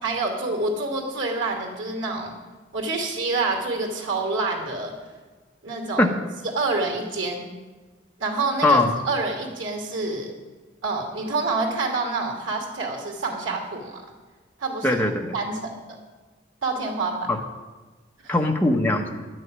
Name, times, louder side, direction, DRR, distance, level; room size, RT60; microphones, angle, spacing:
voice 1, 0.0-2.3 2.7-4.9 5.6-6.1 6.5-7.4 8.2-10.3 10.8-14.0 14.6-15.0 15.3-15.7 16.6-17.1 18.2-18.3, right 3 dB, 90° right, 2 dB, 2.6 m, -27 dB
voice 2, 8.6-8.9 14.8-15.4 17.3-17.4 18.3-19.2, left 2 dB, 10° left, 2 dB, 1.0 m, -20 dB
11.5 x 6.5 x 9.4 m, 1.3 s
head